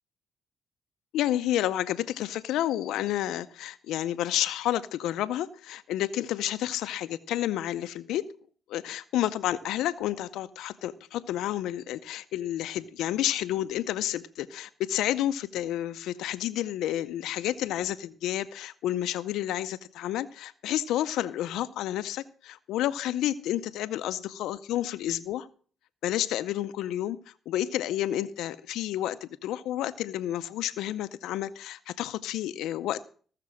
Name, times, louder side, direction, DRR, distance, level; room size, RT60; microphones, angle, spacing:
voice 1, 1.1-8.3 8.7-25.5 26.0-27.2 27.5-33.0, left 13 dB, 85° left, 11 dB, 0.5 m, -30 dB
15.5 x 6.6 x 6.2 m, 0.44 s
cardioid pair, 90°, 0 cm